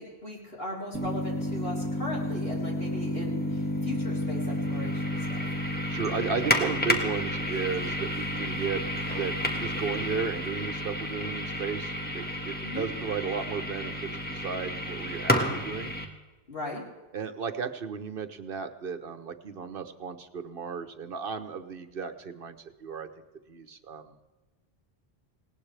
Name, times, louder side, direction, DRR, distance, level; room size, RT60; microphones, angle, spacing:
voice 1, 0.0-5.2 12.6-12.9 16.5-16.8, left 1 dB, 70° left, -3 dB, 4.2 m, -38 dB
sound 1, 0.9-16.0, left 1 dB, 10° left, 1.6 m, -31 dB
voice 2, 5.9-8.8 9.1-15.9 17.1-23.1 23.5-24.1, right 6 dB, 60° right, 8 dB, 1.2 m, -34 dB
19.5 x 18.0 x 3.4 m, 1.2 s
omnidirectional pair, 1.0 m